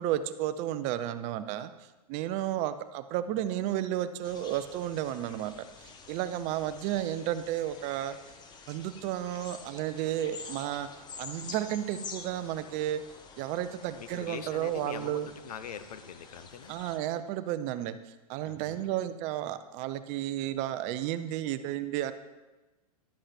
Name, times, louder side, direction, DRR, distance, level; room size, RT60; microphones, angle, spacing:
voice 1, 0.0-1.7 2.1-8.2 8.7-10.9 11.2-13.0 13.4-15.3 16.7-18.0 18.3-22.1, right 12 dB, 35° right, 12 dB, 0.6 m, -32 dB
sound 1, 4.2-17.0, left 5 dB, 20° left, 0.9 m, -48 dB
voice 2, 14.0-16.8 18.4-18.9, left 8 dB, 75° left, 11 dB, 0.9 m, -43 dB
11.5 x 7.8 x 4.3 m, 1.1 s
hypercardioid pair, 125°, 20 cm